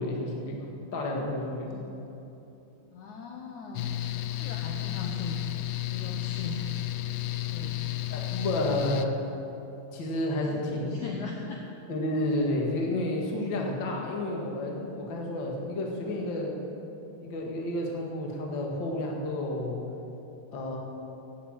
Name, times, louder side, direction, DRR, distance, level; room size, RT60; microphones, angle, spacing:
voice 1, 0.0-1.7 8.1-9.2 9.9-10.9 11.9-16.6 17.2-19.8 20.5-20.8, left 1 dB, 40° left, 0 dB, 1.9 m, -31 dB
voice 2, 1.6-1.9 2.9-3.9 4.4-5.4 5.8-6.7 7.0-7.1 7.5-7.9 10.4-11.6 16.1-16.3, left 3 dB, 65° left, 1 dB, 2.0 m, -39 dB
Mechanical fan, 3.8-9.1, left 15 dB, 85° left, 1.9 m, -32 dB
15.5 x 9.5 x 7.6 m, 3.0 s
omnidirectional pair, 4.5 m